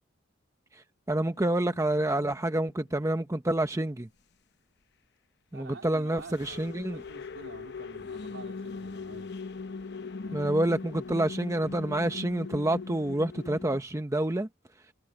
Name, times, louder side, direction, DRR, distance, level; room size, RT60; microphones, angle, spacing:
voice 1, 1.1-4.1 5.5-7.0 10.3-14.5, right 1 dB, 15° right, 0.8 m, -28 dB
sound 1, 1.3-3.1 6.2-13.8, left 4 dB, 60° left, 0.9 m, -40 dB
voice 2, 5.5-9.3 10.2-10.6, right 3 dB, 85° right, 3.1 m, -49 dB
head